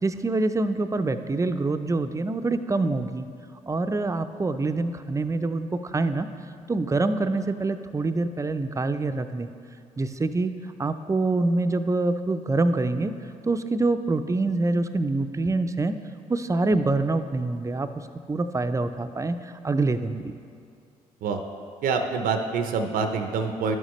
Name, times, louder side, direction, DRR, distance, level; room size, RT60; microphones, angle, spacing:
voice 1, 0.0-3.3 3.7-6.3 6.7-9.5 10.0-10.5 10.8-13.1 13.5-15.9 16.3-17.9 18.3-20.4, right 2 dB, 20° right, 10 dB, 0.5 m, -25 dB
voice 2, 21.8-23.8, right 5 dB, 75° right, 6 dB, 0.5 m, -26 dB
10.5 x 6.4 x 3.1 m, 2.4 s
supercardioid pair, 55°, 15 cm